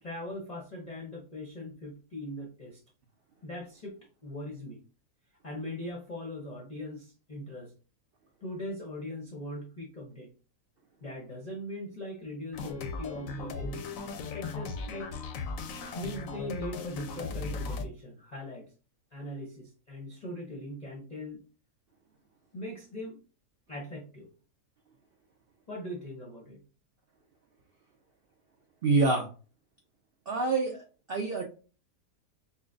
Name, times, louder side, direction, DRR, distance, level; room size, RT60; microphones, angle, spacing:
voice 1, 0.0-2.8 3.4-3.9 4.2-4.8 5.4-7.7 8.4-10.3 11.0-13.8 14.3-15.1 15.9-18.7 19.1-21.4 22.5-23.2 23.7-24.3 25.7-26.6, left 1 dB, 35° left, -2 dB, 0.6 m, -40 dB
sound 1, 12.5-17.8, left 3 dB, 70° left, 0.9 m, -37 dB
voice 2, 28.8-29.3 30.3-31.4, right 3 dB, 70° right, 2 dB, 0.5 m, -27 dB
5.5 x 2.2 x 2.5 m, 0.36 s
omnidirectional pair, 1.7 m